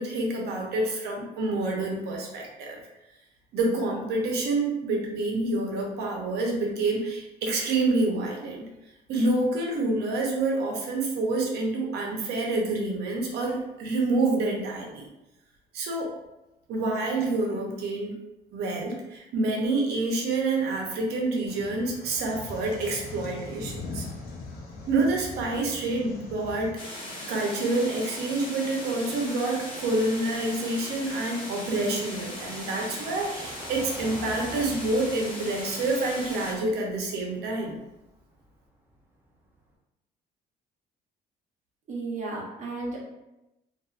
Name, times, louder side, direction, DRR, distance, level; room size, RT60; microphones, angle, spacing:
voice 1, 0.0-2.8 3.5-8.7 9.1-15.1 15.7-16.1 16.7-18.1 18.5-24.1 24.9-26.8 27.3-37.8, right 2 dB, 75° right, 0 dB, 0.7 m, -27 dB
sound 1, 21.5-26.7, left 3 dB, 65° left, 0.6 m, -40 dB
sound 2, 26.8-36.5, left 1 dB, 30° left, 0.9 m, -39 dB
Car passing by / Engine, 29.0-39.6, right 1 dB, 10° right, 0.5 m, -47 dB
voice 2, 41.9-43.0, right 3 dB, 45° right, -3 dB, 0.8 m, -33 dB
2.6 x 2.4 x 2.4 m, 0.94 s
cardioid pair, 110°, 17 cm